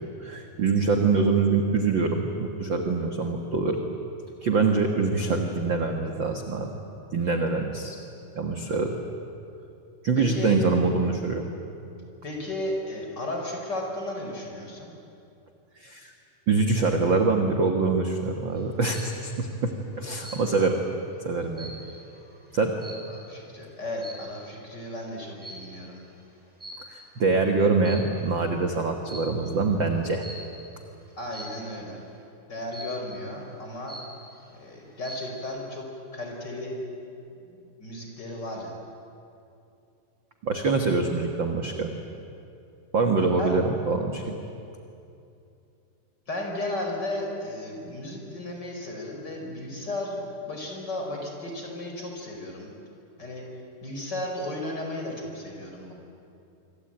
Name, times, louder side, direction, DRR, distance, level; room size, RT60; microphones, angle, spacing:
voice 1, 0.0-3.8 4.4-6.7 7.1-7.9 8.3-9.0 10.0-11.5 15.8-16.1 16.5-20.8 21.2-21.7 22.5-22.7 26.9-30.2 40.4-41.9 42.9-44.4, right 4 dB, 45° right, 4 dB, 1.6 m, -24 dB
voice 2, 10.2-10.6 12.2-14.9 23.1-26.0 31.2-32.0 32.5-34.0 34.5-35.9 36.1-36.7 37.5-38.7 43.2-43.6 46.3-52.7 53.2-53.4 53.8-55.9, left 1 dB, 30° left, 1 dB, 5.2 m, -34 dB
sound 1, 18.6-19.2 20.2-20.8 21.2-23.4 24.0-24.4 25.4-25.8 26.6-27.2 27.7-28.4 29.1-29.4 30.2-30.6 31.3-31.7 32.7-33.2 33.6-33.7 33.9-34.5 34.9-35.4, right 1 dB, ahead, 6.1 m, -43 dB
26.0 x 25.0 x 8.9 m, 2.6 s
omnidirectional pair, 4.1 m